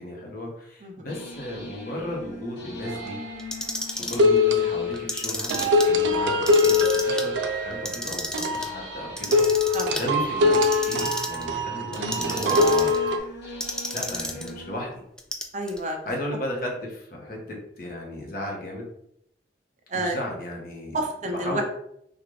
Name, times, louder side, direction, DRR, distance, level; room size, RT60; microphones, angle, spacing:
voice 1, 0.0-3.2 4.0-10.6 10.9-12.9 13.9-15.0 16.0-18.9 19.9-21.0 21.3-21.6, left 1 dB, 55° left, -1 dB, 1.1 m, -35 dB
sound 1, 1.1-14.8, left 2 dB, 80° left, 1.1 m, -42 dB
sound 2, 2.9-3.3 4.2-5.0 5.5-13.2, left 2 dB, 90° right, 0.4 m, -23 dB
Clock, 3.4-4.2 4.9-5.9 6.3-7.2 7.7-8.7 9.2-10.0 10.5-11.4 11.9-13.0 13.6-14.5 15.2-15.8, left 1 dB, 5° left, 0.3 m, -31 dB
voice 2, 15.5-16.0 19.9-20.2 20.9-21.6, right 1 dB, 40° right, 2 dB, 0.6 m, -29 dB
3.8 x 2.5 x 3.1 m, 0.74 s
head